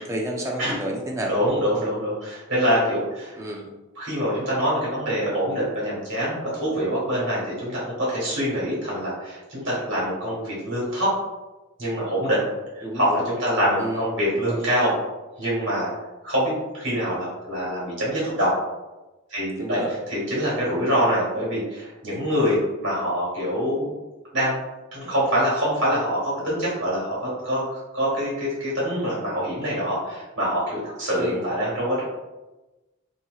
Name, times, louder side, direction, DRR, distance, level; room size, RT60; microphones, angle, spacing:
voice 1, 0.0-1.3 3.4-3.7 12.8-13.2 13.8-14.6 19.6-19.9 31.1-31.4, right 1 dB, 15° right, -1 dB, 0.4 m, -30 dB
voice 2, 1.3-3.4 4.0-11.1 11.8-12.5 12.7-14.9 15.4-15.9 16.2-18.5 19.3-19.8 20.1-23.9 24.3-24.6 24.9-32.0, equal, 60° right, -7 dB, 1.5 m, -25 dB
2.9 x 2.8 x 2.3 m, 1.1 s
head